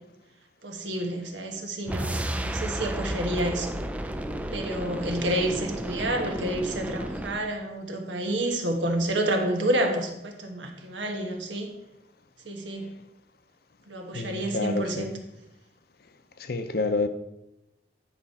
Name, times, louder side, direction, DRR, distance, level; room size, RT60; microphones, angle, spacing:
voice 1, 0.6-3.8 4.5-11.7 12.4-13.0 13.9-15.1, right 1 dB, 75° right, 3 dB, 1.4 m, -29 dB
sound 1, 1.9-7.5, right 1 dB, 5° right, 0.3 m, -32 dB
voice 2, 14.1-15.1 16.5-17.1, left 3 dB, 55° left, 9 dB, 0.6 m, -28 dB
9.8 x 5.2 x 4.2 m, 0.91 s
head